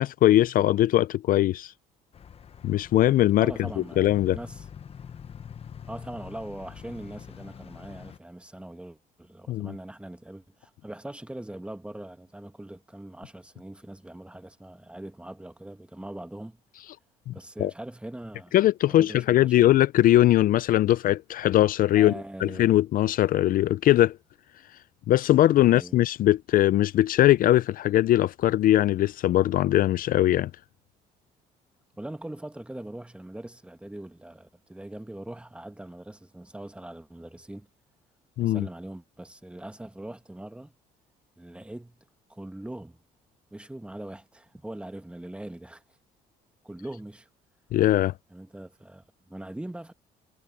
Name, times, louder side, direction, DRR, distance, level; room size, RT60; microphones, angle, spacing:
voice 1, 0.0-1.7 2.6-3.5 4.0-4.4 9.5-9.7 17.3-17.4 17.6-17.7 18.5-22.1 22.4-24.2 25.1-30.5 38.4-38.7 47.7-48.1, left 14 dB, 55° left, 0.4 m, -21 dB
sound 1, 2.1-8.2, left 7 dB, 35° left, 1.0 m, -45 dB
voice 2, 3.4-4.7 5.9-16.6 17.3-18.5 18.9-19.5 21.9-22.7 25.6-26.0 32.0-37.7 38.4-40.7 41.4-42.0 42.3-43.0 43.5-45.8 46.6-47.3 48.3-49.9, right 1 dB, 5° right, 1.3 m, -41 dB
cardioid pair, 110°, 17 cm